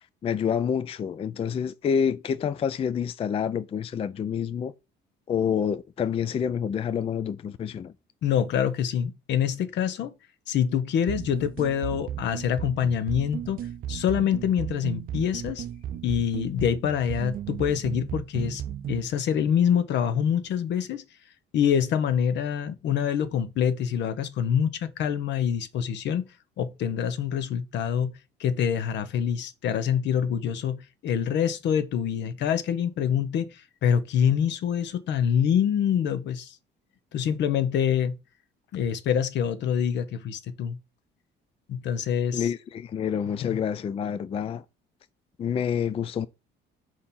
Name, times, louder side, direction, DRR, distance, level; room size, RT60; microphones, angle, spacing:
voice 1, 0.2-4.7 5.3-7.9 42.3-44.6 45.4-46.3, left 7 dB, 30° left, 0.3 m, -28 dB
voice 2, 8.2-10.1 10.5-15.6 16.0-18.6 18.9-21.0 21.5-26.3 26.6-36.6 37.1-38.1 38.7-40.8 41.7-42.5 43.4-43.6, left 8 dB, 65° left, 0.9 m, -26 dB
sound 1, 11.1-19.1, right 10 dB, 50° right, 0.4 m, -35 dB
6.4 x 2.9 x 5.4 m
cardioid pair, 110°, 19 cm